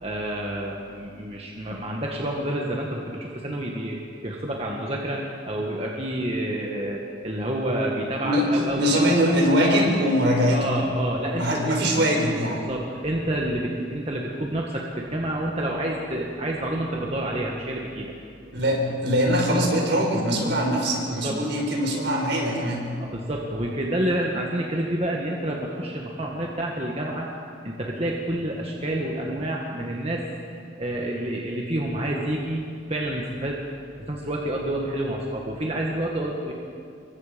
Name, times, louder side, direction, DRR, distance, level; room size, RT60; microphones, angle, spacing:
voice 1, 0.0-4.0 4.2-8.9 9.6-9.8 10.5-11.8 12.7-18.1 21.1-21.4 23.0-27.3 27.6-33.6 34.0-36.5, right 1 dB, 30° right, -1 dB, 1.8 m, -29 dB
voice 2, 8.8-10.7 11.4-12.7 18.5-22.9, equal, 65° right, 0 dB, 5.2 m, -22 dB
26.0 x 23.5 x 5.3 m, 2.4 s
head